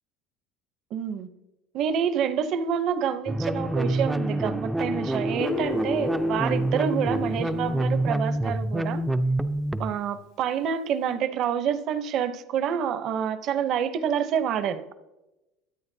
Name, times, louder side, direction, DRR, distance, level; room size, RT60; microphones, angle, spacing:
voice 1, 0.9-1.3 1.7-9.0 9.8-14.9, right 8 dB, 45° right, 12 dB, 0.7 m, -27 dB
sound 1, 3.3-9.9, right 1 dB, 5° right, 0.4 m, -27 dB
Guitar, 5.4-9.2, left 11 dB, 65° left, 0.6 m, -39 dB
23.0 x 8.6 x 2.7 m, 1.0 s
cardioid pair, 160°, 0 cm